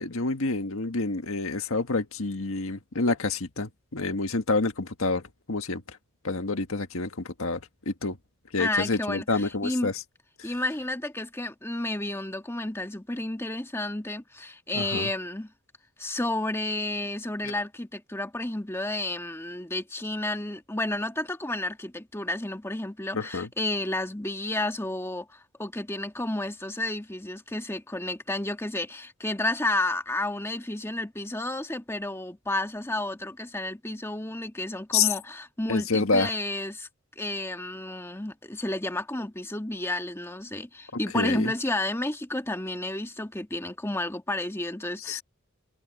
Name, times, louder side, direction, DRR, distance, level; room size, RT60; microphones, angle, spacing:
voice 1, 0.0-6.0 6.2-8.2 8.5-10.0 10.4-10.5 14.7-15.1 17.4-17.5 23.1-23.5 34.9-35.1 35.7-36.3 41.1-41.5 45.0-45.2, left 3 dB, 75° left, 1.6 m, -28 dB
voice 2, 8.6-9.9 10.4-15.5 16.0-36.9 37.2-45.2, left 1 dB, 10° left, 1.8 m, -31 dB
head